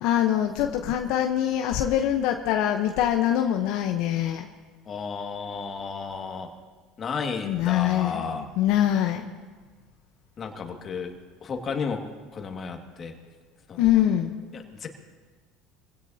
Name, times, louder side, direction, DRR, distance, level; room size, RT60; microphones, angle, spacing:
voice 1, 0.0-4.5 7.4-9.3 13.8-14.7, left 11 dB, 70° left, 4 dB, 0.9 m, -24 dB
voice 2, 4.9-6.5 7.0-8.5 10.4-11.1 11.4-13.1 13.7-13.8 14.5-14.9, left 5 dB, 40° left, 3 dB, 2.0 m, -33 dB
24.5 x 16.5 x 2.8 m, 1.4 s
supercardioid pair, 90°, 0 cm